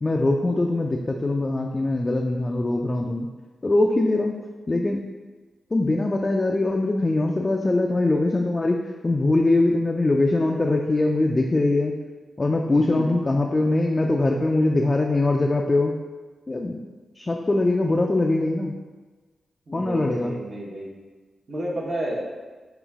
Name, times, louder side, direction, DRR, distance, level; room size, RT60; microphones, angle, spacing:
voice 1, 0.0-3.3 3.6-4.4 4.7-5.0 5.7-12.0 12.4-16.0 16.5-16.8 17.2-18.7 19.7-20.3, left 2 dB, 35° left, 0 dB, 0.3 m, -22 dB
voice 2, 12.6-13.2 19.7-20.9 21.5-22.3, right 1 dB, 50° right, -3 dB, 1.0 m, -31 dB
3.9 x 2.3 x 3.5 m, 1.3 s
cardioid pair, 50°, 0 cm